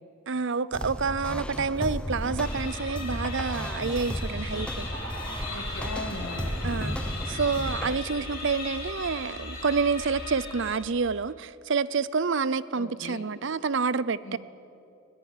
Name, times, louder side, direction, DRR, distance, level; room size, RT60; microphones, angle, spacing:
voice 1, 0.3-4.9 6.6-7.0 7.3-14.4, right 5 dB, 55° right, 18 dB, 0.6 m, -28 dB
sound 1, 0.7-8.0, equal, 5° left, 0.8 m, -34 dB
sound 2, 2.4-11.1, left 2 dB, 45° left, 5.7 m, -38 dB
sound 3, 4.7-11.0, right 3 dB, 85° right, 2.8 m, -46 dB
voice 2, 5.5-6.9 12.7-13.3 14.2-14.4, left 2 dB, 65° left, 6 dB, 2.2 m, -39 dB
21.0 x 17.5 x 9.9 m, 2.7 s
head